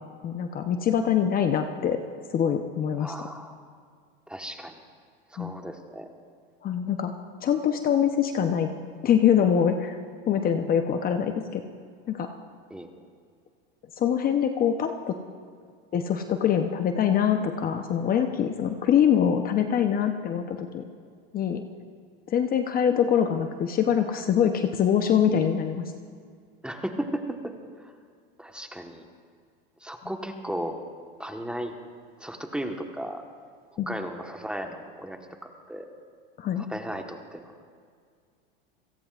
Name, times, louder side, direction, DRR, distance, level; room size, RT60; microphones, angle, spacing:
voice 1, 0.2-2.0 2.3-3.3 5.4-5.5 6.6-7.1 7.4-8.7 9.0-10.0 10.3-11.6 12.1-12.3 14.0-15.1 15.9-20.8 21.3-21.6 22.3-25.8 33.8-33.9 36.4-36.7, left 8 dB, 30° left, 6 dB, 0.9 m, -24 dB
voice 2, 3.0-3.6 4.3-4.8 5.3-6.1 10.5-10.7 12.7-12.9 26.6-27.9 28.4-29.1 29.8-30.8 31.2-31.7 32.2-33.2 33.9-35.9 36.6-37.7, right 1 dB, 5° right, 4 dB, 1.3 m, -35 dB
28.5 x 17.5 x 2.5 m, 2.1 s
supercardioid pair, 115°, 29 cm